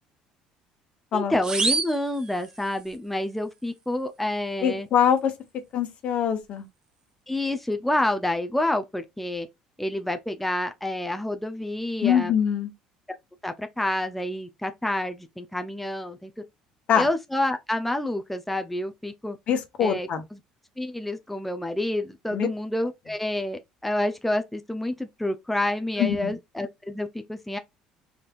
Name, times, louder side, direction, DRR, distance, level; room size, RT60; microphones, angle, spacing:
voice 1, 1.1-4.9 7.3-9.5 9.8-12.3 13.4-16.3 17.0-19.4 19.8-20.4 20.8-27.6, left 1 dB, 5° left, 0.6 m, -28 dB
sound 1, 1.4-3.0, right 4 dB, 30° right, 0.9 m, -29 dB
voice 2, 4.6-5.3 5.7-6.6 12.0-12.7 16.9-17.1 19.5-20.2 22.3-22.5 26.0-26.3, left 8 dB, 55° left, 1.2 m, -23 dB
4.2 x 3.3 x 2.4 m
supercardioid pair, 75°, 2 cm